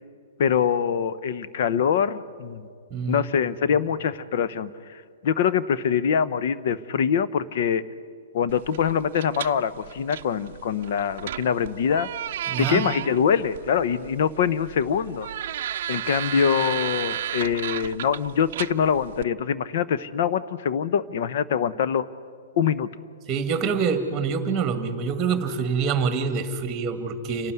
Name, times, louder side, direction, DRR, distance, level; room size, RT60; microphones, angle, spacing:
voice 1, 0.4-2.7 3.1-4.7 5.2-7.8 8.3-12.1 12.6-15.3 15.9-22.1 22.6-22.9, left 7 dB, 60° left, 13 dB, 0.9 m, -24 dB
voice 2, 2.9-3.3 12.5-12.8 23.3-27.5, right 5 dB, 20° right, 8 dB, 2.0 m, -26 dB
sound 1, 8.5-19.2, right 11 dB, 60° right, 0.5 m, -34 dB
28.5 x 12.5 x 9.4 m, 2.2 s
hypercardioid pair, 135°, 0 cm